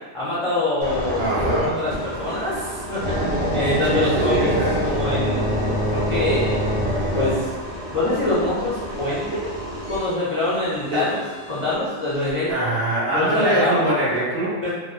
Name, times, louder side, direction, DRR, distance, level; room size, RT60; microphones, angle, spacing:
voice 1, 0.1-1.3 1.8-4.5 4.8-6.6 7.1-7.5 7.9-9.5 9.9-11.2 11.5-12.7 13.1-13.8 14.6-14.7, left 2 dB, 50° left, -11 dB, 0.4 m, -25 dB
sound 1, 0.8-11.7 12.3-12.5, equal, 45° right, 0.5 m, -26 dB
voice 2, 1.2-1.7 3.8-4.8 10.9-11.1 12.5-14.6, right 1 dB, 65° right, -8 dB, 1.0 m, -23 dB
2.7 x 2.0 x 2.3 m, 1.4 s
omnidirectional pair, 1.1 m